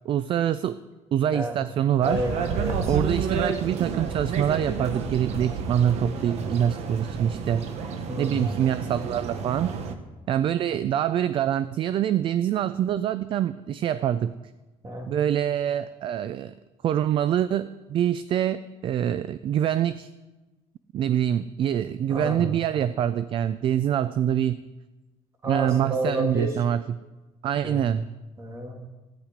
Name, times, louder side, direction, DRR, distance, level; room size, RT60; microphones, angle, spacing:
voice 1, 0.1-0.8 1.1-2.2 2.9-7.7 8.2-9.7 10.3-14.3 15.1-16.5 16.8-20.1 20.9-24.6 25.5-27.0 27.4-28.1, right 10 dB, 45° right, 14 dB, 0.3 m, -25 dB
voice 2, 2.0-3.0 8.1-8.5 14.8-15.1 22.1-22.5 25.4-26.5 27.6-27.8 28.4-28.7, right 1 dB, 25° right, 2 dB, 1.9 m, -30 dB
sound 1, 2.0-9.9, right 5 dB, 65° right, 1.1 m, -30 dB
13.5 x 9.8 x 5.1 m, 1.1 s
cardioid pair, 150°, 12 cm